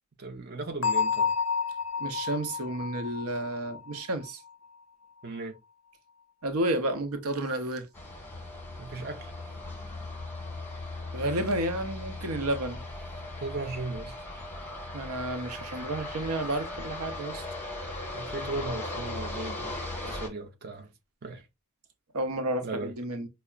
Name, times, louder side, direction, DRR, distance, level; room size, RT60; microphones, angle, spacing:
voice 1, 0.2-1.3 5.2-5.6 8.8-9.3 13.4-14.2 18.1-20.9 21.2-21.5 22.6-22.9, right 3 dB, 45° right, 0.6 m, -37 dB
Bell, 0.8-4.5, left 6 dB, 60° left, 0.4 m, -30 dB
voice 2, 2.0-4.4 6.4-7.9 11.1-12.8 14.9-17.4 22.1-23.3, right 1 dB, 85° right, 0.7 m, -31 dB
sound 1, 7.9-20.3, left 2 dB, 10° left, 1.0 m, -38 dB
5.5 x 2.0 x 2.3 m
head